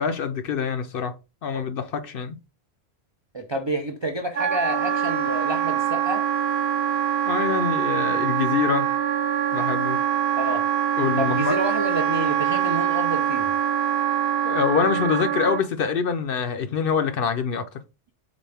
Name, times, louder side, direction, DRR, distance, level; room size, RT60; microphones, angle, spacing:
voice 1, 0.0-2.4 7.3-9.0 9.5-10.0 11.0-11.5 14.4-17.7, left 6 dB, 60° left, 0.7 m, -25 dB
voice 2, 3.3-6.3 10.4-10.6 11.2-13.5, right 1 dB, 40° right, 0.4 m, -29 dB
Wind instrument woodwind instrument, 4.3-15.7, right 9 dB, 70° right, 0.8 m, -24 dB
4.1 x 3.7 x 3.4 m
omnidirectional pair, 1.2 m